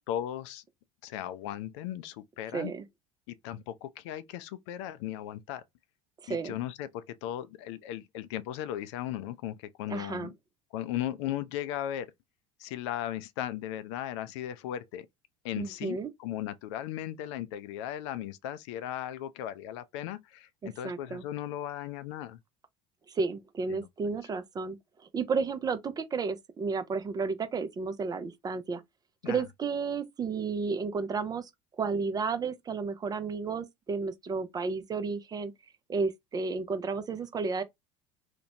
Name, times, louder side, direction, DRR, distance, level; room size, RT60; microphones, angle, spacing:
voice 1, 0.1-0.6 1.0-2.7 3.3-5.6 6.3-10.3 10.7-12.1 12.6-15.1 15.4-22.4 23.7-23.9 29.2-29.4, left 12 dB, 55° left, 0.4 m, -37 dB
voice 2, 2.5-2.8 6.2-6.5 9.9-10.3 15.6-16.1 20.6-21.2 23.1-24.8 25.1-28.8 29.3-31.5 31.8-35.5 35.9-37.6, right 4 dB, 20° right, 0.4 m, -32 dB
2.9 x 2.1 x 2.8 m
figure-of-eight pair, 65°, 17 cm